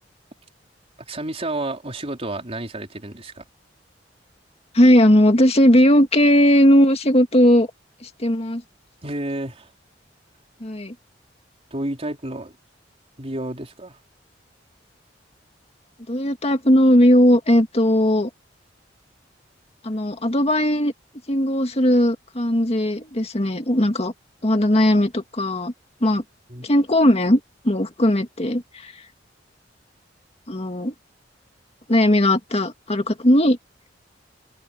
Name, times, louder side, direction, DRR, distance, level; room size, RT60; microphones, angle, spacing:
voice 1, 1.1-3.4 9.0-9.7 11.7-12.5 13.2-14.0 26.5-26.7, right 1 dB, 35° right, 4.1 m, -30 dB
voice 2, 4.7-7.7 8.0-8.6 10.6-10.9 16.1-18.3 19.8-20.9 21.3-24.1 24.4-25.7 26.0-26.2 26.6-28.9 30.5-30.9 31.9-33.6, equal, 35° left, 2.1 m, -18 dB
open air
head